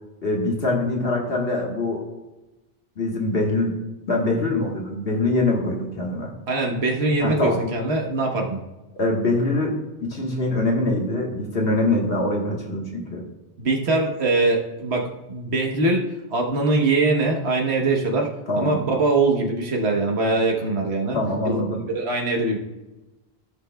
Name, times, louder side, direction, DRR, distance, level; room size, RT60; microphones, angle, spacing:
voice 1, 0.2-2.0 3.0-3.8 4.1-6.3 7.2-7.6 8.9-9.7 10.0-13.2 18.5-18.8 21.1-21.8, left 2 dB, 70° left, -1 dB, 1.6 m, -23 dB
voice 2, 6.5-8.6 13.6-18.3 18.6-21.2 21.4-21.6 21.9-22.6, right 2 dB, 90° right, 1 dB, 1.4 m, -22 dB
15.0 x 6.6 x 2.2 m, 1.0 s
omnidirectional pair, 1.1 m